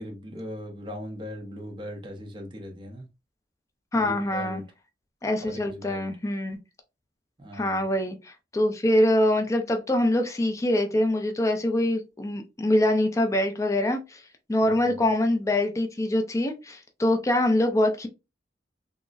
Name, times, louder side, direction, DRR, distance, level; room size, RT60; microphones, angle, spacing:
voice 1, 0.0-3.1 3.9-4.6 5.5-6.1 7.4-7.8 14.6-15.0, equal, 30° right, 0.7 m, -39 dB
voice 2, 3.9-4.6 5.2-6.6 7.5-14.2 14.5-18.1, left 1 dB, 20° left, 0.4 m, -24 dB
3.8 x 2.0 x 2.3 m
head